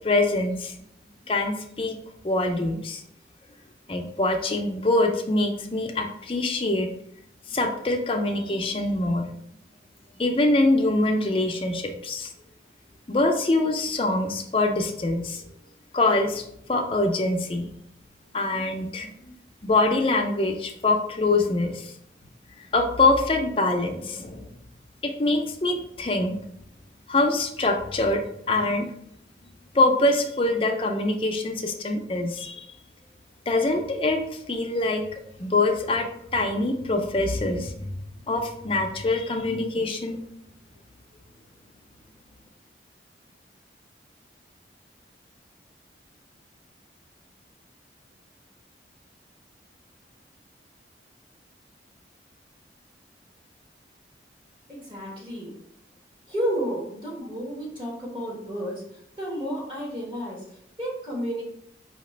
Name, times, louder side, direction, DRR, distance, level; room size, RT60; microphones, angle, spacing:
voice 1, 0.0-0.7 1.3-2.0 2.2-3.0 3.9-6.9 7.5-9.3 10.2-12.3 13.1-15.4 15.9-17.7 18.3-19.3 19.6-21.9 22.7-24.5 25.0-26.4 27.1-28.9 29.7-32.7 33.5-37.9 38.3-40.2, left 2 dB, 30° left, 4 dB, 0.5 m, -24 dB
voice 2, 54.7-55.6 56.3-58.8 59.2-61.4, equal, 30° right, -5 dB, 1.3 m, -31 dB
4.9 x 2.8 x 3.2 m, 0.72 s
head